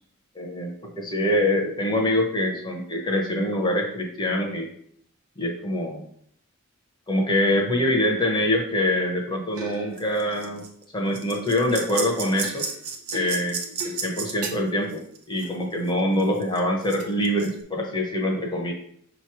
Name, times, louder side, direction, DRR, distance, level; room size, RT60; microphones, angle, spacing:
voice 1, 0.3-4.7 5.4-6.0 7.1-10.6 10.9-12.7 13.1-13.6 13.8-18.7, left 1 dB, 20° left, 1 dB, 0.9 m, -24 dB
sound 1, 9.6-10.8 11.1-15.7 16.0-17.5, right 4 dB, 80° right, 1.0 m, -34 dB
6.4 x 3.1 x 4.7 m, 0.66 s
head